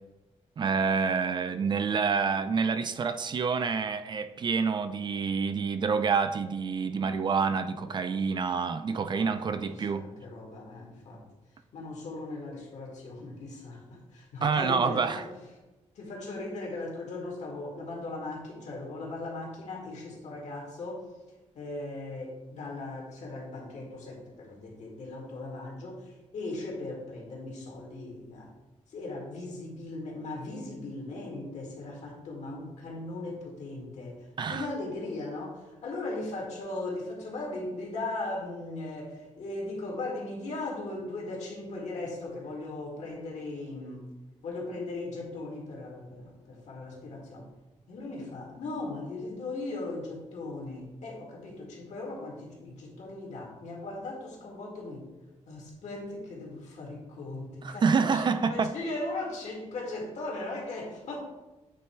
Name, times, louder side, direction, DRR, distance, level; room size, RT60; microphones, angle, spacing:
voice 1, 0.6-10.1 14.4-15.2 34.4-34.7 57.6-58.7, right 5 dB, 40° right, 0.3 m, -27 dB
voice 2, 8.9-11.2 11.7-15.3 16.0-21.0 21.6-28.5 28.9-44.1 44.4-47.5 47.9-55.1 55.5-61.2, left 2 dB, 75° left, 1.9 m, -38 dB
8.5 x 3.4 x 4.4 m
wide cardioid pair, 165°, 12 cm